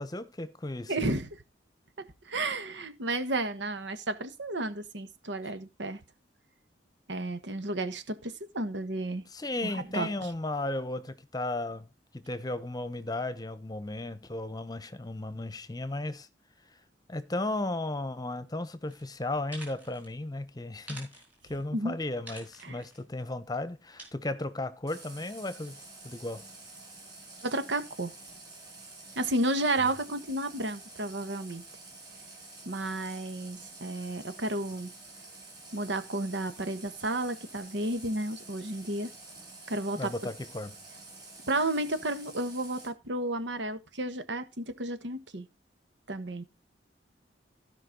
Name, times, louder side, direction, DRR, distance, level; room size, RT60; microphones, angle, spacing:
voice 1, 0.0-0.9 9.3-11.9 12.1-16.3 17.1-21.1 21.4-25.8 26.0-26.4 40.0-40.8, left 2 dB, 20° left, 1.0 m, -35 dB
voice 2, 0.9-1.4 2.2-6.0 7.1-9.2 9.6-10.1 21.7-22.0 22.6-22.8 27.4-28.1 29.1-31.6 32.6-34.9 35.7-39.1 39.7-40.1 41.5-45.4 46.1-46.4, right 2 dB, 90° right, 1.5 m, -32 dB
shake spray can, 18.9-19.0 19.4-20.1 20.8-21.6 22.3-23.0 24.0-24.1, right 1 dB, 10° right, 4.5 m, -47 dB
Water tap faucet, 24.9-42.9, right 3 dB, 25° right, 6.2 m, -49 dB
16.0 x 5.3 x 3.9 m
head